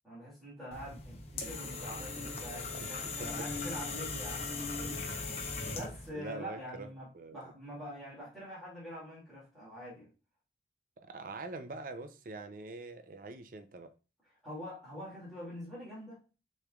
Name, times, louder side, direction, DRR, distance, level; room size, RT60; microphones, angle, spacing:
voice 1, 0.0-5.0 5.7-10.1 14.4-16.2, equal, ahead, 2.3 m, -45 dB
sound 1, 0.7-6.1, left 3 dB, 35° left, 0.7 m, -39 dB
voice 2, 6.1-6.9 7.1-7.4 11.0-13.9, right 3 dB, 50° right, 0.5 m, -44 dB
6.5 x 3.2 x 2.3 m
head